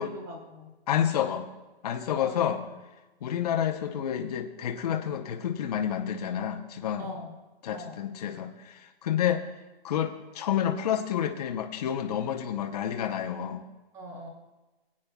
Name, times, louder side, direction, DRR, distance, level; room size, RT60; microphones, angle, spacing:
voice 1, 0.0-0.7 2.1-2.8 7.0-7.3 7.7-8.0 13.9-14.3, equal, 10° right, 2 dB, 0.9 m, -42 dB
voice 2, 0.9-1.5 1.8-2.6 3.2-7.1 7.6-9.4 9.8-13.6, left 9 dB, 40° left, 4 dB, 0.7 m, -29 dB
23.0 x 8.6 x 2.2 m, 1.1 s
hypercardioid pair, 165°, 32 cm